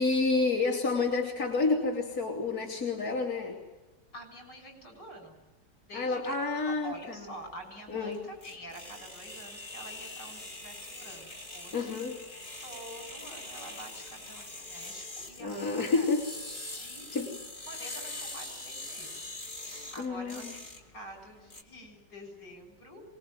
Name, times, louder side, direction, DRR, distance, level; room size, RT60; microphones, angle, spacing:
voice 1, 0.0-3.6 5.9-7.2 7.9-8.2 11.7-12.2 15.4-16.3 17.1-17.3 20.0-20.5, left 3 dB, 55° left, -1 dB, 3.4 m, -29 dB
voice 2, 4.1-5.4 5.9-6.4 6.7-12.0 12.6-16.1 16.7-17.1 17.6-19.3 19.9-23.0, right 1 dB, 75° left, 4 dB, 7.6 m, -47 dB
sound 1, 6.9-21.6, left 2 dB, 25° left, 2.8 m, -43 dB
25.0 x 21.0 x 9.4 m, 1.1 s
omnidirectional pair, 1.9 m